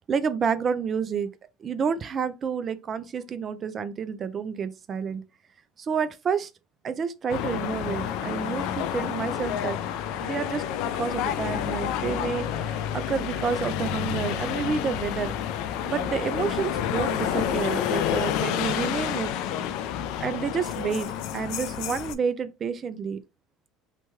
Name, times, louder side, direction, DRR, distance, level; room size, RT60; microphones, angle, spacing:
voice 1, 0.1-1.3 1.6-5.2 5.8-6.5 6.8-9.8 10.2-10.6 10.9-15.3 15.8-19.3 20.2-23.2, right 6 dB, 40° right, 0.3 m, -29 dB
sound 1, 7.3-22.2, left 10 dB, 70° left, 0.3 m, -29 dB
2.9 x 2.2 x 3.0 m
supercardioid pair, 90°, 0 cm